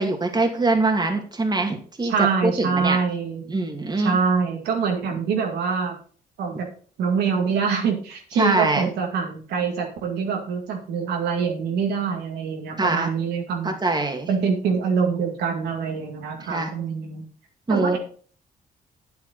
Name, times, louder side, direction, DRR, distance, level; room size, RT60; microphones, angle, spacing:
voice 1, 0.0-2.1 2.4-3.0 3.5-4.2 8.4-8.9 12.8-13.1 13.6-14.3 16.4-16.7 17.7-18.0, right 2 dB, 25° right, 3 dB, 2.3 m, -23 dB
voice 2, 2.0-3.4 4.0-6.0 6.4-6.7 7.0-13.7 14.3-17.2 17.7-18.0, right 6 dB, 90° right, 1 dB, 2.3 m, -25 dB
9.1 x 8.0 x 4.2 m, 0.43 s
cardioid pair, 80°, 17 cm